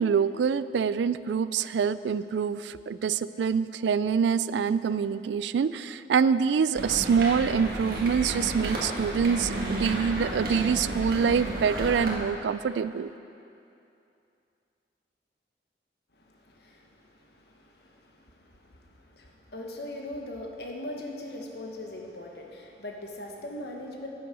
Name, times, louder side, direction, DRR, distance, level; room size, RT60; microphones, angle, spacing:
voice 1, 0.0-13.1, right 6 dB, 85° right, 16 dB, 0.3 m, -25 dB
sound 1, 6.8-12.1, right 1 dB, 55° right, 1.7 m, -32 dB
voice 2, 16.1-24.1, left 1 dB, 65° left, 1 dB, 1.4 m, -41 dB
10.0 x 8.9 x 6.2 m, 2.7 s
head